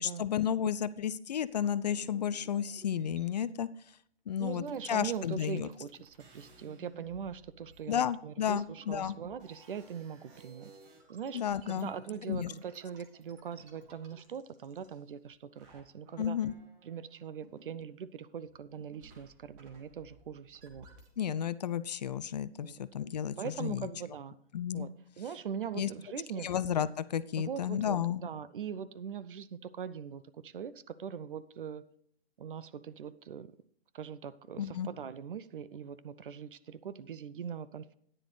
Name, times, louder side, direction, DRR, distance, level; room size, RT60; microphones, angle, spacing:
voice 1, 0.0-3.7 4.3-5.7 7.9-9.1 11.3-11.9 12.3-12.5 16.2-16.5 21.2-23.9 24.5-24.9 25.8-25.9 26.4-28.2 34.6-34.9, left 9 dB, 40° left, 16 dB, 0.4 m, -32 dB
sound 1, 1.5-3.5 4.3-4.4 4.6-15.3 15.6-18.2 18.5-21.2, right 3 dB, 25° right, 1.9 m, -59 dB
voice 2, 4.4-10.7 11.1-11.4 11.7-16.4 16.8-20.9 22.6-22.8 23.4-24.4 24.7-26.5 27.4-31.8 32.4-33.5 33.9-37.9, right 8 dB, 55° right, 16 dB, 0.7 m, -41 dB
14.0 x 10.0 x 3.2 m, 0.66 s
figure-of-eight pair, 125°, 32 cm